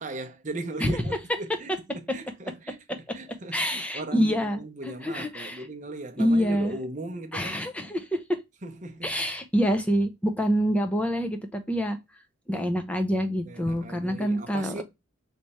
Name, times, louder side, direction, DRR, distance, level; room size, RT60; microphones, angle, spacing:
voice 1, 0.0-7.6 8.6-9.3 13.4-14.8, right 2 dB, 35° right, 0.7 m, -38 dB
voice 2, 0.8-1.2 3.5-4.6 4.8-5.7 6.2-6.8 7.3-8.2 9.0-12.0 12.5-14.8, equal, 5° left, 0.5 m, -26 dB
3.4 x 3.1 x 4.1 m
head